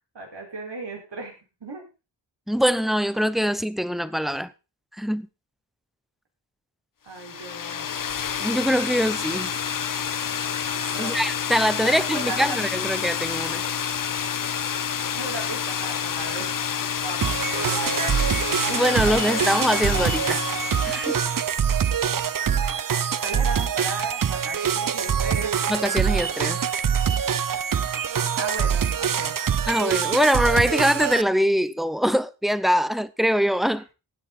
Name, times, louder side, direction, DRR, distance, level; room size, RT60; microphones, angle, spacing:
voice 1, 0.1-1.9 7.0-7.9 10.9-11.2 11.8-12.6 15.1-16.5 17.0-18.2 23.2-25.5 28.4-29.4, right 3 dB, 65° right, 5.5 m, -36 dB
voice 2, 2.5-4.5 5.0-5.3 8.4-9.5 11.0-13.6 18.7-20.4 20.8-21.2 25.7-26.6 29.7-33.9, equal, ahead, 0.7 m, -23 dB
sound 1, 7.1-21.6, left 8 dB, 45° left, 0.6 m, -29 dB
sound 2, 17.2-31.2, right 8 dB, 45° right, 0.6 m, -24 dB
16.0 x 9.6 x 4.3 m
wide cardioid pair, 95°, 45 cm